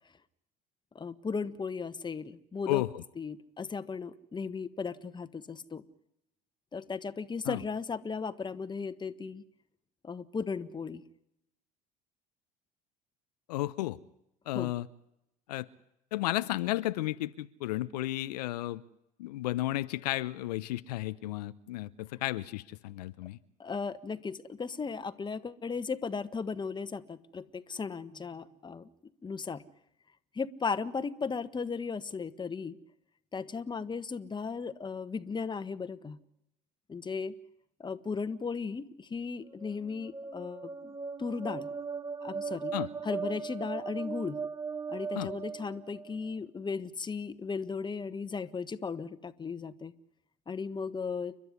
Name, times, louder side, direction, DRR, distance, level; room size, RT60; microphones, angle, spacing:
voice 1, 0.9-2.8 3.2-5.8 6.7-9.4 10.0-11.0 14.5-14.7 23.6-28.9 29.2-29.6 30.3-32.8 33.3-36.2 36.9-37.3 37.8-40.9 41.2-41.7 42.2-42.7 43.0-44.4 44.9-49.9 50.5-51.4, left 5 dB, 20° left, 12 dB, 1.4 m, -36 dB
voice 2, 2.7-3.0 7.4-7.6 13.5-14.0 14.5-14.9 15.5-15.7 16.1-18.8 19.2-23.4 42.7-42.9 45.1-45.3, left 16 dB, 75° left, 14 dB, 0.8 m, -33 dB
sound 1, 39.5-46.3, right 5 dB, 15° right, 1.2 m, -38 dB
30.0 x 12.0 x 9.7 m, 0.81 s
hypercardioid pair, 70°, 20 cm